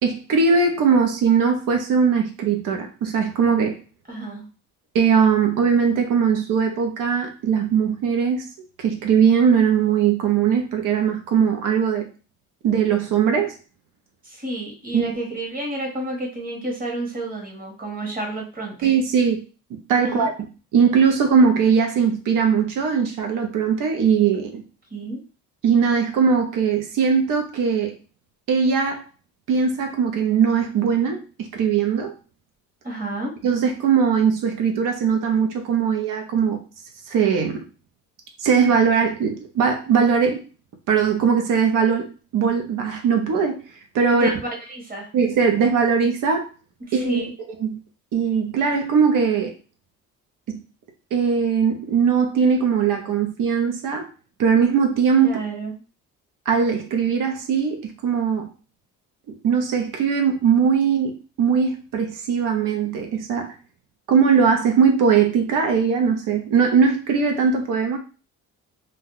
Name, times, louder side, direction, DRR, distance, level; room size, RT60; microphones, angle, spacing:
voice 1, 0.0-3.8 4.9-8.4 8.8-12.1 12.6-13.5 14.9-15.1 18.8-19.4 19.9-20.3 20.7-24.6 25.6-27.9 28.5-29.0 29.5-32.1 33.4-36.6 37.1-37.6 38.4-40.4 40.9-43.6 43.9-44.3 45.1-46.5 46.9-47.2 47.6-47.8 48.1-49.5 50.5-50.6 51.1-54.1 54.4-55.4 56.5-58.5 59.4-63.5 64.1-68.0, right 6 dB, 80° right, 4 dB, 0.7 m, -20 dB
voice 2, 4.1-4.4 14.2-18.9 20.0-20.3 24.9-25.2 32.8-33.3 44.1-45.1 46.8-47.3 55.2-55.7, right 1 dB, 25° right, -1 dB, 1.4 m, -30 dB
2.7 x 2.2 x 3.8 m, 0.35 s
cardioid pair, 90°, 32 cm